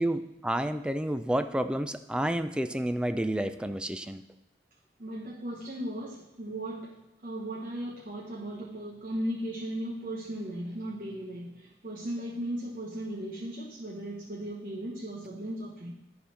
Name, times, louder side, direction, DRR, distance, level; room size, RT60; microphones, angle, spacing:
voice 1, 0.0-4.2, right 1 dB, 5° right, 10 dB, 0.3 m, -30 dB
voice 2, 5.0-7.0 7.2-15.9, right 1 dB, 50° right, -4 dB, 1.2 m, -36 dB
11.0 x 4.2 x 5.7 m, 0.94 s
head